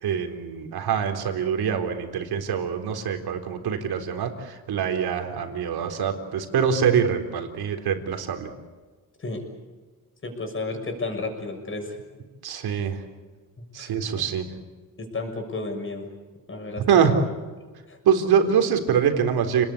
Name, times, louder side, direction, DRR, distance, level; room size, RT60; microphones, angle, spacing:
voice 1, 0.0-8.5 12.4-13.0 13.7-14.5 16.9-17.1 18.0-19.6, right 7 dB, 75° right, 5 dB, 4.0 m, -24 dB
voice 2, 10.2-11.9 13.8-13.9 15.1-16.0 16.5-17.1 17.9-18.0, left 3 dB, 30° left, 4 dB, 6.7 m, -32 dB
29.5 x 20.0 x 8.6 m, 1.3 s
cardioid pair, 125°, 38 cm